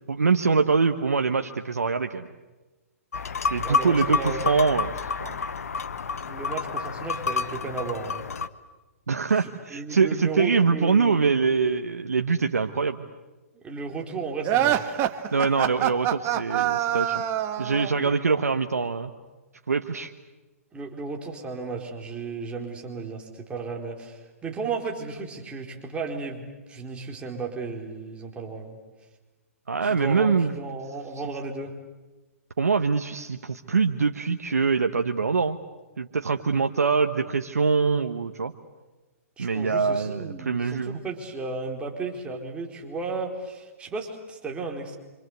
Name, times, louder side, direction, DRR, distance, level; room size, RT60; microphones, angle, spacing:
voice 1, 0.0-2.3 3.5-5.4 9.1-13.1 15.3-17.2 17.6-19.1 19.7-20.1 29.7-30.5 32.6-35.6 36.0-38.5 39.4-41.0, right 5 dB, 85° right, 6 dB, 1.3 m, -24 dB
sound 1, 3.1-8.5, left 5 dB, 75° left, 1.4 m, -29 dB
voice 2, 3.6-4.4 6.2-8.3 9.3-11.6 13.6-15.0 17.9-18.1 20.7-28.8 29.8-31.7 39.4-45.0, right 4 dB, 15° right, 1 dB, 4.5 m, -34 dB
sound 2, 14.4-18.0, right 11 dB, 30° right, 1.6 m, -25 dB
27.0 x 26.5 x 8.3 m, 1.2 s
hypercardioid pair, 130°, 8 cm